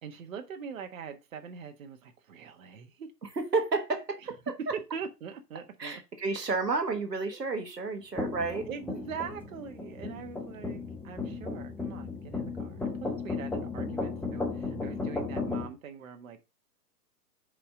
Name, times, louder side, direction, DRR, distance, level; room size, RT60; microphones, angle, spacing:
voice 1, 0.0-3.1 4.6-6.5 7.3-7.4 8.7-16.4, right 6 dB, 55° right, 1.4 m, -42 dB
voice 2, 3.4-4.2 5.8-8.7, right 3 dB, 90° right, 1.5 m, -31 dB
sound 1, 8.2-15.7, left 3 dB, 5° left, 1.0 m, -35 dB
5.6 x 4.9 x 4.8 m
figure-of-eight pair, 120°, 47 cm